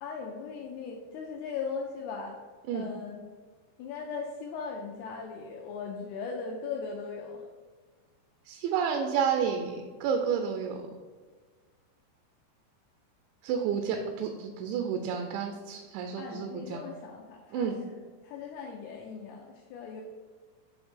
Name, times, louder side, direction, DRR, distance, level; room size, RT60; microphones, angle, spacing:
voice 1, 0.0-2.4 2.7-3.3 3.8-7.4 16.2-18.0 18.2-20.0, left 5 dB, 85° left, 0 dB, 2.3 m, -38 dB
voice 2, 8.5-10.8 13.4-16.8 17.5-17.8, right 7 dB, 80° right, 4 dB, 2.8 m, -30 dB
8.0 x 3.3 x 5.5 m, 1.5 s
omnidirectional pair, 5.3 m